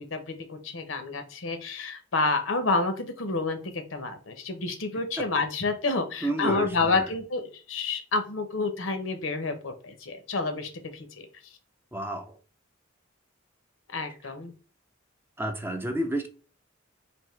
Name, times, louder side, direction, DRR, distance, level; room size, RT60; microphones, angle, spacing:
voice 1, 0.1-11.3 13.9-14.5, left 3 dB, 80° left, 0.8 m, -29 dB
voice 2, 6.2-7.1 11.9-12.4 14.2-14.3 15.4-16.3, right 1 dB, 10° right, 0.4 m, -31 dB
3.5 x 2.7 x 4.3 m
head